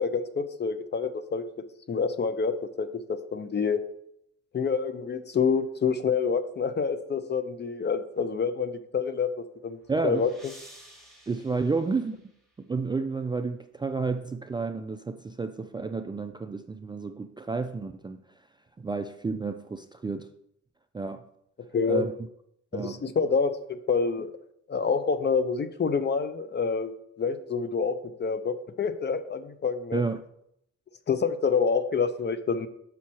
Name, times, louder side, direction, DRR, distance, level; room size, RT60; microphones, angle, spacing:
voice 1, 0.0-1.4 1.9-3.8 4.5-10.3 21.7-22.1 22.7-24.3 24.7-30.0 31.1-32.7, left 5 dB, 35° left, 0.6 m, -27 dB
sound 1, 9.5-12.7, right 1 dB, ahead, 1.6 m, -53 dB
voice 2, 9.9-10.3 11.3-12.2 12.6-18.2 18.8-20.3 20.9-21.2 21.9-22.1 22.7-23.0 29.9-30.2, right 4 dB, 15° right, 0.3 m, -31 dB
6.2 x 5.6 x 4.3 m
cardioid pair, 90°, 30 cm